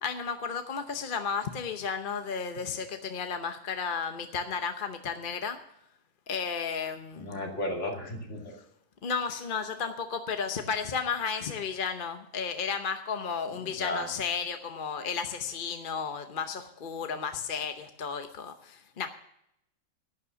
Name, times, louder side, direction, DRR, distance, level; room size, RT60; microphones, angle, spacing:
voice 1, 0.0-5.6 6.3-7.5 9.0-19.1, left 6 dB, 45° left, 7 dB, 0.9 m, -33 dB
voice 2, 7.2-8.5 13.6-14.1, left 1 dB, 60° left, 1 dB, 2.8 m, -34 dB
12.0 x 9.7 x 6.8 m, 0.77 s
omnidirectional pair, 1.4 m